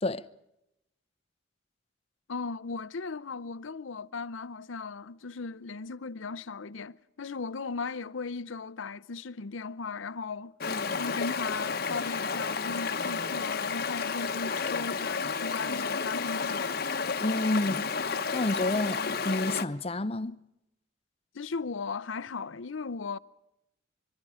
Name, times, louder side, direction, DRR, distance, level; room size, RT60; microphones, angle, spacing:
voice 1, 2.3-10.5 11.0-16.8 21.3-23.2, left 4 dB, 85° left, 0.7 m, -37 dB
Stream, 10.6-19.6, left 5 dB, 50° left, 1.0 m, -31 dB
voice 2, 17.2-20.4, left 2 dB, 30° left, 0.7 m, -30 dB
25.0 x 23.5 x 5.0 m
head